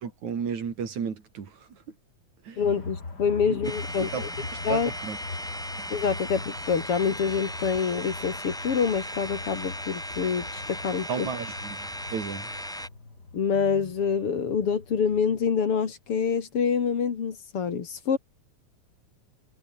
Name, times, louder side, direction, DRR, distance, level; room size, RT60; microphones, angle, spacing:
voice 1, 0.0-1.5 2.5-2.6 3.5-3.6 4.1-5.2 11.1-12.5, right 6 dB, 75° right, 4.5 m, -33 dB
voice 2, 2.6-4.3 4.6-4.9 5.9-11.3 13.3-18.2, left 6 dB, 50° left, 2.8 m, -26 dB
sound 1, 2.6-15.5, left 3 dB, 35° left, 4.3 m, -41 dB
sound 2, 3.6-12.9, equal, ahead, 2.2 m, -37 dB
omnidirectional pair, 3.4 m